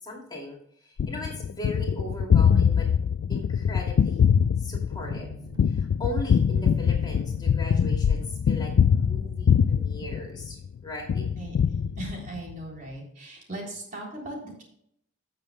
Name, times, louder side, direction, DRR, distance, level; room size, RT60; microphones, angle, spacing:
voice 1, 0.0-2.9 3.3-4.2 4.6-5.4 5.6-11.3, left 1 dB, 20° left, -1 dB, 2.5 m, -38 dB
Gunshot gunfire, 1.0-10.7 11.1-12.5, left 7 dB, 75° left, 0.3 m, -23 dB
sound 1, 5.0-10.4, right 3 dB, 20° right, 0.5 m, -47 dB
voice 2, 12.0-14.6, right 2 dB, 45° right, -1 dB, 3.5 m, -38 dB
17.0 x 6.9 x 2.2 m, 0.71 s
head